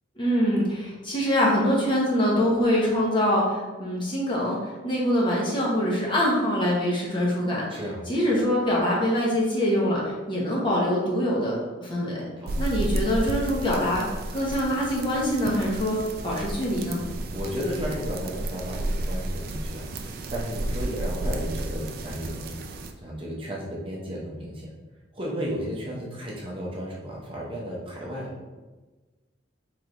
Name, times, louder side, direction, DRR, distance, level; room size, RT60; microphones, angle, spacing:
voice 1, 0.2-7.8 8.1-12.3 12.6-14.0 14.3-16.0 16.2-17.0, equal, 25° left, -4 dB, 0.9 m, -24 dB
voice 2, 7.7-8.0 12.4-12.9 17.3-22.6 23.0-24.7 25.1-28.3, equal, 25° right, -4 dB, 0.7 m, -34 dB
sound 1, 12.5-22.9, right 1 dB, 50° right, 0.4 m, -32 dB
3.4 x 3.3 x 3.7 m, 1.2 s
head